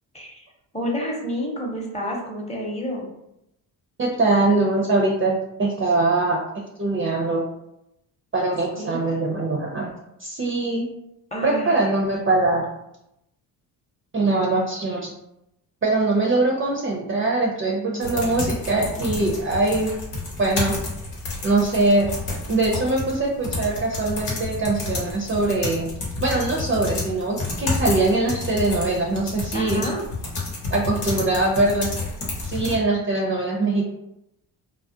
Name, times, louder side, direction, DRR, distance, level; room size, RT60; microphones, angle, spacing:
voice 1, 0.7-3.1 8.8-9.1 11.3-11.8 17.7-18.3 29.5-30.0, equal, 15° left, -2 dB, 0.8 m, -30 dB
voice 2, 4.0-7.4 8.3-9.9 10.2-10.9 11.4-12.7 14.1-15.1 15.8-19.9 20.4-20.7 21.4-22.1 22.5-25.9 26.2-29.8 30.7-31.9 32.4-33.9, right 2 dB, 25° right, -2 dB, 0.5 m, -22 dB
sound 1, 18.0-32.8, left 3 dB, 80° left, 0.9 m, -30 dB
2.3 x 2.0 x 2.6 m, 0.84 s
supercardioid pair, 55°, 47 cm